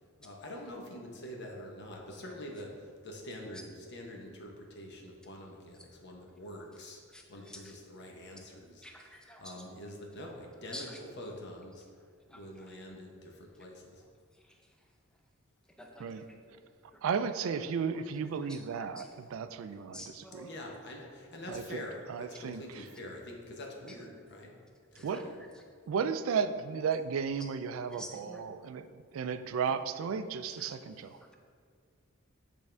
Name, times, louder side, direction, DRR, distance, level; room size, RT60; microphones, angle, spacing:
voice 1, 0.2-7.0 7.3-8.8 9.4-11.8 12.3-14.0 20.4-24.5 25.2-25.4, left 1 dB, 55° left, 0 dB, 0.8 m, -45 dB
voice 2, 7.1-7.8 8.4-8.5 8.8-9.7 10.7-11.0 12.0-12.8 13.5-13.7 14.3-15.2 15.7-17.0 17.9-18.0 18.4-19.1 19.7-20.6 22.3-22.4 22.9-23.0 23.9-24.0 24.5-24.6 24.9-25.6 27.4-27.5 27.9-28.4 29.7-29.8 30.5-31.4, equal, 5° left, 2 dB, 0.5 m, -51 dB
voice 3, 17.0-20.0 20.3-20.5 21.5-22.9 25.0-25.3 25.9-28.8 29.1-31.2, right 6 dB, 75° right, 11 dB, 0.3 m, -34 dB
8.1 x 3.5 x 3.3 m, 2.1 s
head